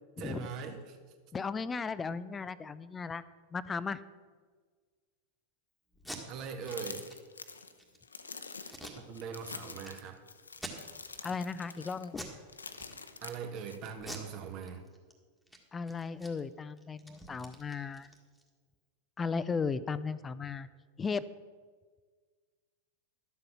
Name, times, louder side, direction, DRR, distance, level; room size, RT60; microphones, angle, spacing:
voice 1, 0.2-1.0 6.3-7.1 9.1-10.2 13.2-14.8, right 6 dB, 40° right, 6 dB, 1.3 m, -41 dB
voice 2, 1.3-3.2 3.5-4.0 11.2-12.3 15.7-18.1 19.2-20.7 21.0-21.3, left 5 dB, 15° left, 16 dB, 0.4 m, -36 dB
Packing tape duct tape, 5.9-6.2 6.6-6.8 7.1-7.2 7.6-8.0 8.7-9.5 9.8-9.9 10.5-11.2 11.6-11.8 12.1-12.4 12.7-13.4 14.0-15.1 15.4-15.6 15.9-18.5, right 1 dB, ahead, 1.7 m, -46 dB
sound 1, 6.7-13.8, left 4 dB, 75° left, 0.7 m, -46 dB
12.0 x 7.6 x 6.1 m, 1.5 s
figure-of-eight pair, 90°, 0 cm